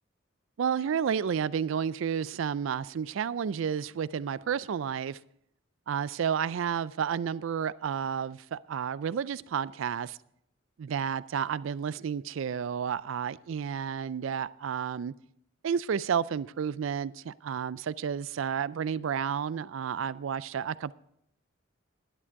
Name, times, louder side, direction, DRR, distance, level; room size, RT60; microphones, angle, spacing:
voice 1, 0.6-5.2 5.9-10.2 10.8-15.1 15.6-20.9, right 7 dB, 70° right, 0.4 m, -31 dB
11.0 x 9.9 x 4.6 m
head